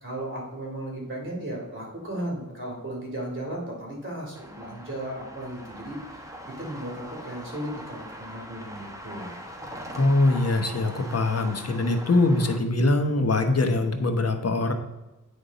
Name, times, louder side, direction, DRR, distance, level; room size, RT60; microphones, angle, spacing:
voice 1, 0.0-9.3, right 1 dB, 35° right, -2 dB, 2.5 m, -35 dB
sound 1, 4.3-12.6, equal, 10° right, 1.0 m, -41 dB
voice 2, 9.9-14.7, left 2 dB, 45° left, 5 dB, 1.0 m, -23 dB
9.9 x 3.6 x 4.0 m, 1.0 s
cardioid pair, 60°, 34 cm